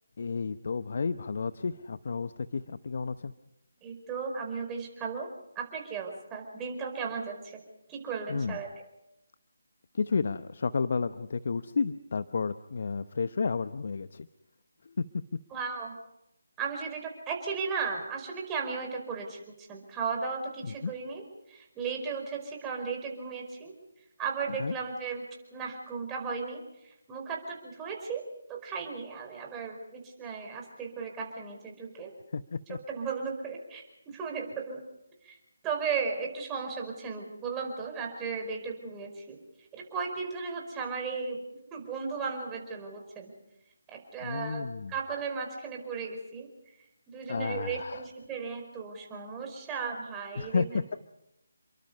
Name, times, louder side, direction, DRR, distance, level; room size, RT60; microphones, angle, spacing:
voice 1, 0.2-3.3 8.3-8.6 9.9-14.3 14.9-15.2 20.6-20.9 24.5-24.7 32.3-32.8 44.2-44.9 47.3-48.1 50.4-51.0, left 5 dB, 55° left, 13 dB, 0.9 m, -32 dB
voice 2, 3.8-5.3 5.5-7.6 7.9-8.7 15.5-15.9 16.6-19.4 19.7-21.2 21.5-23.7 24.2-25.2 25.5-26.6 27.1-28.2 28.5-32.1 32.9-34.8 35.2-35.4 35.6-39.4 39.7-41.4 41.7-43.3 43.9-46.5 47.1-51.0, right 5 dB, 15° right, 1 dB, 4.9 m, -35 dB
29.5 x 23.0 x 5.6 m, 0.88 s
figure-of-eight pair, 155°, 0 cm